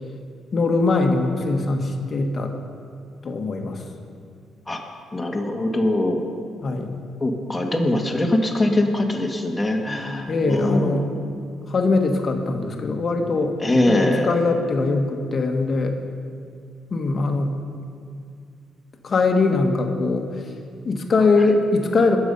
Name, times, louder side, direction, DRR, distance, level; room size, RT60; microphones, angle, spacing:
voice 1, 0.5-2.5 3.2-3.8 6.6-7.0 10.3-11.1 11.7-13.5 13.9-16.0 16.9-17.6 19.0-20.5 20.8-22.2, left 3 dB, 40° left, 4 dB, 1.6 m, -21 dB
voice 2, 5.1-6.2 7.2-11.0 13.6-14.3, left 1 dB, 20° left, 2 dB, 1.9 m, -22 dB
21.5 x 7.2 x 5.5 m, 2.3 s
cardioid pair, 90°, 0 cm